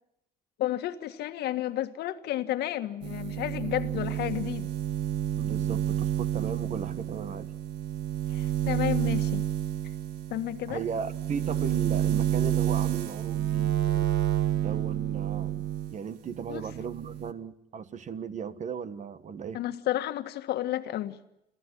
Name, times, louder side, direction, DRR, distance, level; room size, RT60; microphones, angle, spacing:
voice 1, 0.6-4.7 8.3-9.5 10.3-10.8 16.5-16.6 19.5-21.2, left 13 dB, 75° left, 9 dB, 1.7 m, -31 dB
sound 1, 3.0-16.0 16.3-17.3, right 12 dB, 85° right, 1.7 m, -29 dB
voice 2, 5.4-7.5 10.7-13.9 14.6-19.6, right 6 dB, 45° right, 13 dB, 1.6 m, -36 dB
29.5 x 14.5 x 10.0 m, 0.81 s
cardioid pair, 110°, 17 cm